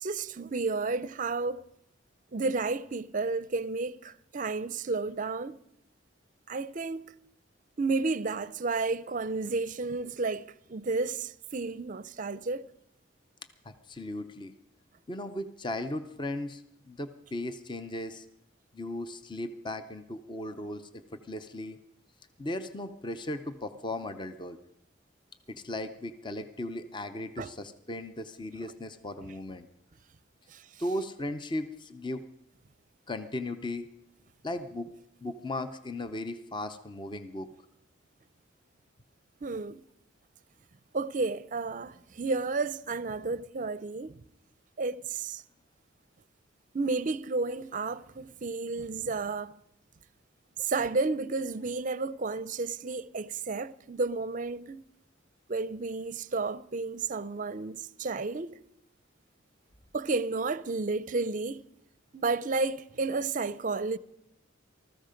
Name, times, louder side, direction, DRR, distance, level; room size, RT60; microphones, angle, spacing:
voice 1, 0.0-1.6 2.3-5.6 6.5-7.0 7.8-12.7 27.4-27.5 30.5-30.6 39.4-39.8 40.9-44.2 44.8-45.4 46.7-49.6 50.6-54.8 55.5-58.6 59.9-61.7 62.1-64.0, right 3 dB, 40° right, 0.5 m, -32 dB
voice 2, 13.6-14.5 15.1-18.3 18.7-20.9 21.2-21.8 22.4-24.6 25.5-29.7 30.8-32.2 33.1-33.9 34.4-34.9 35.2-37.5, left 1 dB, 25° left, 0.7 m, -37 dB
20.0 x 14.0 x 5.2 m
head